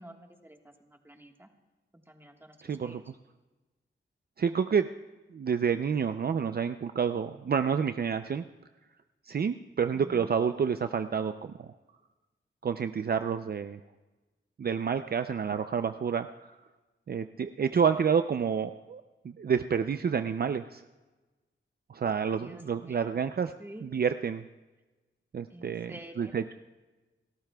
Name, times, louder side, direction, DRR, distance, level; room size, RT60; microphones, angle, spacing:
voice 1, 0.0-1.5 1.9-3.1 9.9-10.4 17.9-18.0 22.3-23.1 23.6-23.9 25.5-26.4, right 1 dB, 10° right, 3 dB, 1.5 m, -49 dB
voice 2, 2.6-3.0 4.4-4.9 5.3-8.4 9.3-11.7 12.6-13.8 14.6-16.3 17.1-20.8 21.9-23.5 23.8-24.4 25.3-26.5, right 6 dB, 50° right, 9 dB, 0.5 m, -29 dB
29.0 x 14.0 x 2.3 m, 1.2 s
wide cardioid pair, 105°, 20 cm